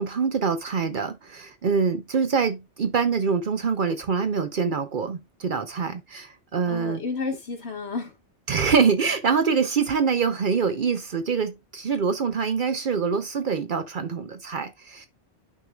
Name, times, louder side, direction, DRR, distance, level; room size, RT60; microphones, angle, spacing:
voice 1, 0.0-7.0 8.5-15.1, right 5 dB, 55° right, 0.7 m, -25 dB
voice 2, 6.7-8.1, left 4 dB, 65° left, 1.9 m, -31 dB
11.0 x 4.7 x 2.3 m
omnidirectional pair, 1.2 m